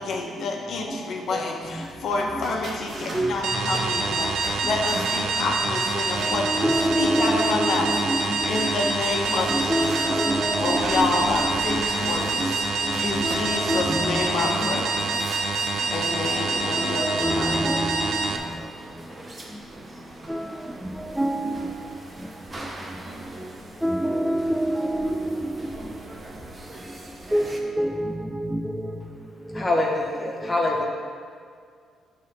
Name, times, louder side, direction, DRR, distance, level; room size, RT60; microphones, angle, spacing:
voice 1, 0.0-6.7 7.0-10.2 10.6-14.9 15.1-15.4 15.9-17.6, left 3 dB, 65° left, 1.2 m, -28 dB
sound 1, 1.6-14.5, right 1 dB, 50° right, 2.0 m, -40 dB
sound 2, 3.4-18.4, right 3 dB, 85° right, 0.7 m, -26 dB
voice 2, 6.2-8.9 9.3-12.5 12.8-14.7 16.7-18.2 20.3-20.5 20.8-21.7 23.8-25.7 27.3-28.8 29.5-29.6 30.4-30.5, right 1 dB, 5° right, 0.4 m, -27 dB
sound 3, 7.6-27.6, right 1 dB, 30° right, 1.0 m, -43 dB
voice 3, 29.5-30.9, left 2 dB, 25° left, 1.2 m, -24 dB
8.1 x 4.2 x 6.7 m
cardioid pair, 90°, 0 cm